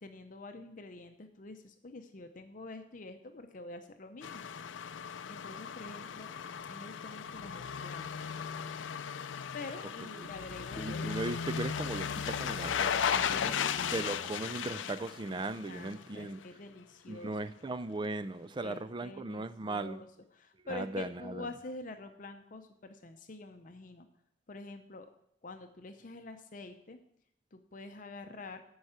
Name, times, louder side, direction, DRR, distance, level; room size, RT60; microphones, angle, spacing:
voice 1, 0.0-6.3 6.7-8.3 9.5-11.2 13.3-14.1 14.5-15.4 15.7-17.4 18.6-24.1 24.5-25.1 25.4-27.0 27.5-28.6, left 2 dB, 45° left, 0.6 m, -47 dB
sound 1, 4.2-16.1 16.4-16.5, left 7 dB, 90° left, 0.5 m, -36 dB
voice 2, 10.8-13.5 13.9-16.4 17.1-20.0 20.7-21.5, right 2 dB, 25° right, 0.4 m, -38 dB
9.8 x 4.8 x 8.0 m
head